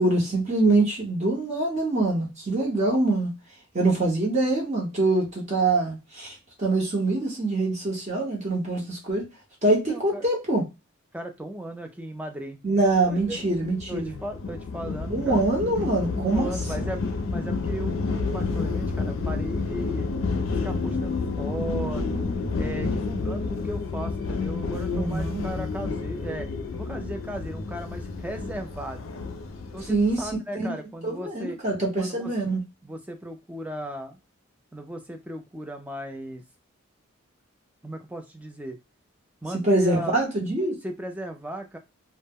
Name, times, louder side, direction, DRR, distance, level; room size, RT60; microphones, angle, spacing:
voice 1, 0.0-3.3 3.7-9.3 9.6-10.6 12.6-14.2 15.1-16.5 24.9-25.4 29.9-30.3 30.5-30.7 31.0-32.6 39.6-40.8, right 2 dB, 35° right, 0.8 m, -24 dB
voice 2, 9.7-10.3 11.1-12.6 13.0-13.4 13.9-15.4 16.1-20.1 20.5-22.2 22.6-29.1 29.7-31.6 32.0-32.3 32.8-34.2 34.7-36.4 37.8-38.8 39.4-40.2 40.8-41.8, right 1 dB, 5° right, 0.3 m, -36 dB
sound 1, 12.9-30.3, left 4 dB, 60° left, 0.4 m, -30 dB
2.0 x 2.0 x 3.4 m
head